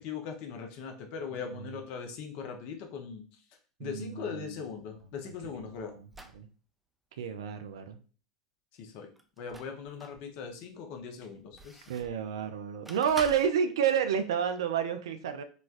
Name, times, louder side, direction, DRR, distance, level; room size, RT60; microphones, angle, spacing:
voice 1, 0.0-3.2 3.8-5.9 8.8-9.1 9.4-11.8, left 6 dB, 55° left, 4 dB, 0.8 m, -40 dB
voice 2, 1.5-1.8 3.8-4.5 5.0-5.3 5.6-6.1 6.3-6.5 7.2-8.0 11.9-15.4, right 8 dB, 75° right, 9 dB, 0.4 m, -30 dB
sound 1, 4.8-6.4 9.2-10.2 10.8-12.3 12.9-13.5, right 1 dB, 5° right, 0.5 m, -48 dB
4.1 x 2.2 x 2.5 m, 0.40 s
hypercardioid pair, 85°, 3 cm